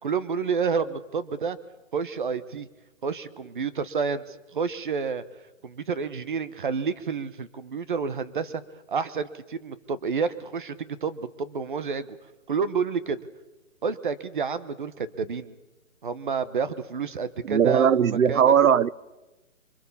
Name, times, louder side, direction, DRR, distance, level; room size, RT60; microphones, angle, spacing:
voice 1, 0.0-1.6 1.9-2.7 3.0-5.2 5.6-8.6 8.9-12.2 12.5-13.2 13.8-15.6 16.0-18.6, right 5 dB, 40° right, 1.1 m, -29 dB
voice 2, 17.5-18.9, right 8 dB, 85° right, 0.9 m, -19 dB
25.0 x 24.0 x 7.1 m
hypercardioid pair, 175°, 40 cm